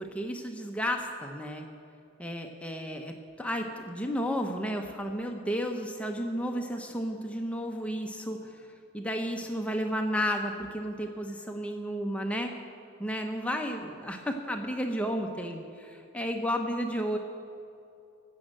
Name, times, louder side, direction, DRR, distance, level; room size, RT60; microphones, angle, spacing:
voice 1, 0.0-1.7 2.2-8.7 8.9-12.6 13.0-17.2, equal, 5° left, 3 dB, 0.7 m, -32 dB
15.0 x 6.3 x 7.7 m, 2.5 s
head